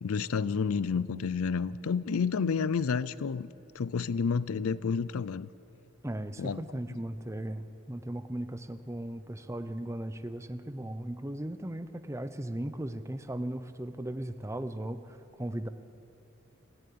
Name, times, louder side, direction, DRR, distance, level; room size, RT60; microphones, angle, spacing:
voice 1, 0.0-3.5 3.7-5.5 6.4-6.6, left 5 dB, 90° left, 18 dB, 0.5 m, -30 dB
voice 2, 6.0-15.7, right 1 dB, 15° right, 11 dB, 0.6 m, -37 dB
27.5 x 11.5 x 8.6 m, 2.9 s
head